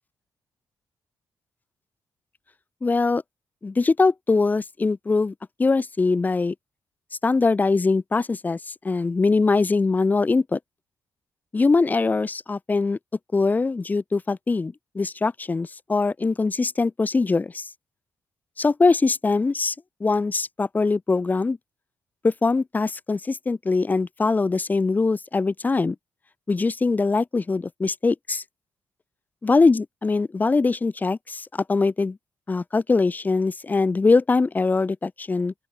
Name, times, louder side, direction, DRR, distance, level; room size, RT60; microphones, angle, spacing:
voice 1, 2.8-3.2 3.6-5.3 5.6-6.5 7.2-8.6 8.8-10.6 11.5-13.0 13.3-17.6 18.6-19.7 20.0-21.6 22.2-25.9 26.5-28.4 29.4-32.2 32.5-35.5, left 3 dB, 25° left, 1.4 m, -22 dB
open air
cardioid pair, 110°, 7 cm